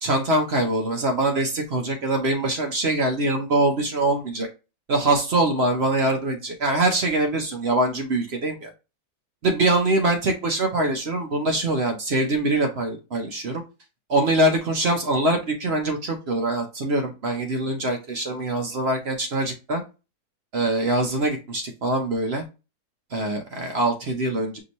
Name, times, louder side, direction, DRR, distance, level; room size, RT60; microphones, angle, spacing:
voice 1, 0.0-4.5 4.9-8.7 9.4-13.6 14.1-19.8 20.5-22.4 23.1-24.6, right 2 dB, 50° right, 3 dB, 0.9 m, -23 dB
5.2 x 2.7 x 2.9 m, 0.29 s
omnidirectional pair, 1.7 m